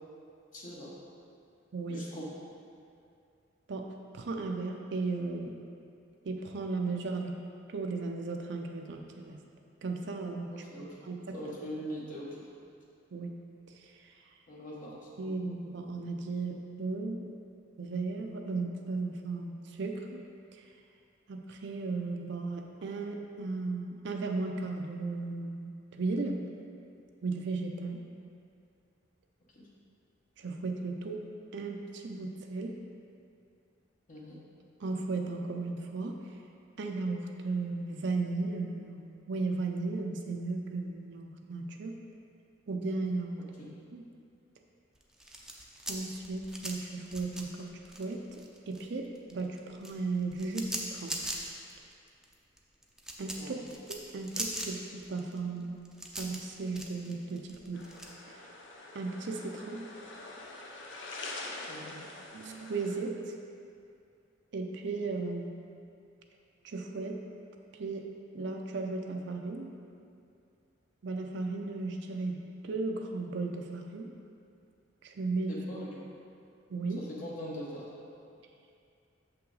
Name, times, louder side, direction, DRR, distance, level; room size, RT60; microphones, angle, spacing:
voice 1, 0.5-0.9 1.9-2.3 10.5-11.1 11.3-12.4 14.5-15.3 29.5-29.7 34.1-34.4 43.6-43.7 53.4-53.5 61.7-62.0 75.5-76.0 77.0-77.9, equal, 45° left, -6 dB, 1.1 m, -42 dB
voice 2, 1.7-2.0 3.7-3.9 4.1-5.5 6.2-7.3 7.7-9.4 9.8-10.6 11.0-11.2 13.1-13.3 15.2-17.3 17.8-20.0 21.3-25.7 26.0-26.4 27.2-28.0 30.4-31.2 31.5-32.7 34.8-36.2 36.8-41.9 42.7-43.4 43.7-44.0 45.9-47.7 48.0-48.2 48.7-51.1 53.2-53.6 54.1-54.8 55.1-55.8 56.2-57.8 58.9-59.9 62.3-63.3 64.5-65.5 66.6-67.2 67.8-68.0 68.3-69.8 71.0-74.1 75.0-75.5 76.7-77.0, right 3 dB, 65° right, 2 dB, 0.5 m, -35 dB
sound 1, 45.0-48.9 49.2-58.1, right 1 dB, 5° right, 0.6 m, -40 dB
sound 2, 57.7-63.0, left 2 dB, 70° left, 0.8 m, -45 dB
6.9 x 5.7 x 3.9 m, 2.4 s
head